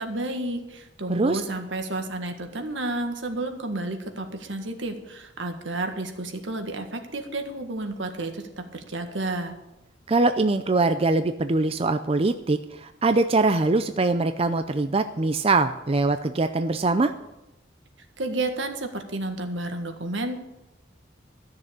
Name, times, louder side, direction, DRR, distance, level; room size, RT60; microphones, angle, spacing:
voice 1, 0.0-9.5 18.2-20.4, right 2 dB, 80° right, 5 dB, 1.7 m, -31 dB
voice 2, 1.1-1.4 10.1-17.1, right 3 dB, 30° right, 9 dB, 0.4 m, -23 dB
13.5 x 6.7 x 8.6 m, 0.95 s
head